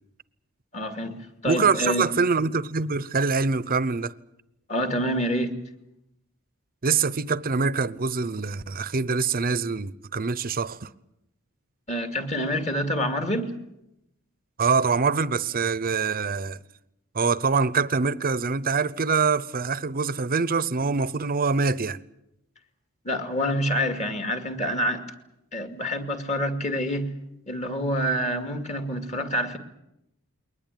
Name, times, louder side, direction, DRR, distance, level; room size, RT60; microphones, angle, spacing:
voice 1, 0.7-1.2 1.4-2.1 4.7-5.6 11.9-13.6 23.0-25.0 25.5-27.1 27.5-29.6, equal, 35° left, 2.3 m, -27 dB
voice 2, 1.5-4.1 6.8-10.9 14.6-16.6 17.1-22.0, right 4 dB, 45° right, 0.8 m, -24 dB
22.0 x 19.5 x 9.2 m
head